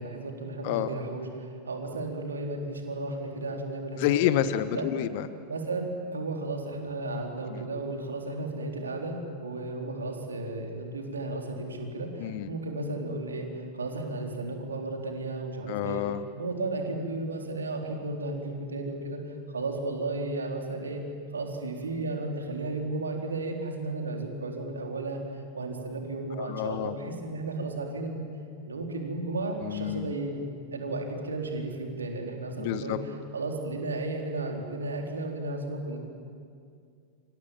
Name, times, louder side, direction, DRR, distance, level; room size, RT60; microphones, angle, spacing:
voice 1, 0.0-4.4 4.7-4.8 5.5-16.0 16.4-21.0 21.3-25.2 25.5-28.3 28.6-30.4 30.7-36.0, right 2 dB, 75° right, 2 dB, 3.9 m, -34 dB
voice 2, 4.0-5.3 7.5-7.6 12.2-12.5 15.7-16.2 26.4-26.9 29.6-30.1 32.6-33.0, left 12 dB, 50° left, 12 dB, 1.4 m, -28 dB
29.5 x 26.5 x 7.6 m, 2.3 s
figure-of-eight pair, 90°, 0 cm